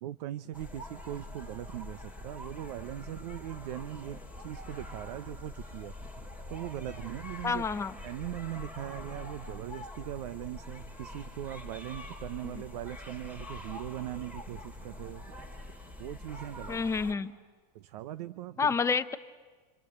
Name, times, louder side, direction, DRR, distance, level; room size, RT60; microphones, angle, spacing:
voice 1, 0.0-7.7 8.0-15.3 16.0-16.8 17.7-18.7, right 13 dB, 75° right, 13 dB, 0.8 m, -40 dB
sound 1, 0.5-17.1, left 2 dB, 5° right, 2.4 m, -45 dB
voice 2, 7.4-7.9 12.4-12.5 16.7-17.4 18.6-19.2, left 5 dB, 15° left, 10 dB, 0.8 m, -29 dB
27.0 x 27.0 x 8.0 m, 1.4 s
supercardioid pair, 145°, 21 cm